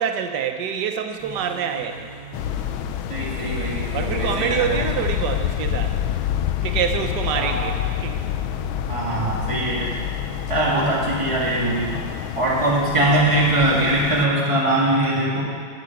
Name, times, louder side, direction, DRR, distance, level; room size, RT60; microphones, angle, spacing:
voice 1, 0.0-2.1 3.9-6.0 6.6-8.2, right 8 dB, 65° right, 6 dB, 1.4 m, -26 dB
sound 1, 1.2-12.1, right 2 dB, 65° left, 4.0 m, -40 dB
sound 2, 2.3-14.3, left 11 dB, 80° left, 1.4 m, -27 dB
voice 2, 3.1-4.8 7.3-7.6 8.9-10.0 10.5-11.9 12.4-15.4, right 1 dB, 15° right, -4 dB, 1.9 m, -21 dB
12.5 x 8.5 x 5.9 m, 2.1 s
omnidirectional pair, 2.2 m